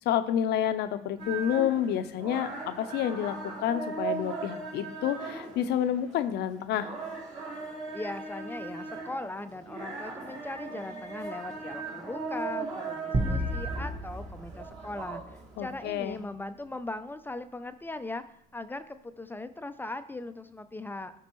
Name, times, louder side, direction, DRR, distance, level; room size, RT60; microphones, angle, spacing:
voice 1, 0.0-6.9 15.6-16.2, left 10 dB, 75° left, 11 dB, 0.6 m, -29 dB
sound 1, 1.2-16.2, right 4 dB, 45° right, 2.0 m, -39 dB
voice 2, 7.9-15.2 15.6-18.2 18.5-21.1, left 2 dB, 10° left, 10 dB, 0.4 m, -39 dB
sound 2, 13.1-15.7, right 1 dB, 25° right, 1.0 m, -33 dB
13.0 x 5.2 x 3.0 m, 0.78 s
cardioid pair, 110°, 17 cm